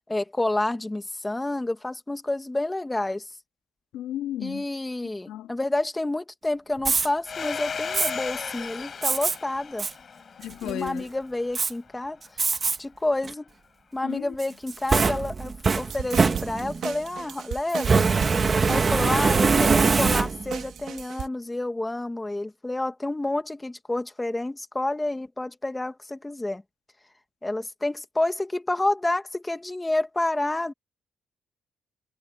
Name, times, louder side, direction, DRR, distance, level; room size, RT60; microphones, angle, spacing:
voice 1, 0.1-3.3 4.4-9.9 10.6-12.5 12.8-13.4 13.9-18.0 18.7-26.6 27.4-30.7, left 2 dB, 15° left, 1.8 m, -29 dB
voice 2, 3.9-4.6 5.3-5.5 10.4-11.1 14.0-14.3, left 12 dB, 85° left, 2.5 m, -34 dB
Fire, 6.8-7.1 7.9-8.1 9.0-9.3 9.8-9.9 10.4-10.9 11.5-11.7 12.4-12.8 13.2-13.3 14.4-16.9 17.8-20.6, right 4 dB, 35° right, 2.1 m, -22 dB
Domestic sounds home sounds, 7.3-11.7, left 6 dB, 45° left, 4.4 m, -36 dB
sound 1, 15.8-21.3, right 9 dB, 65° right, 2.1 m, -36 dB
cardioid pair, 90°, 0 cm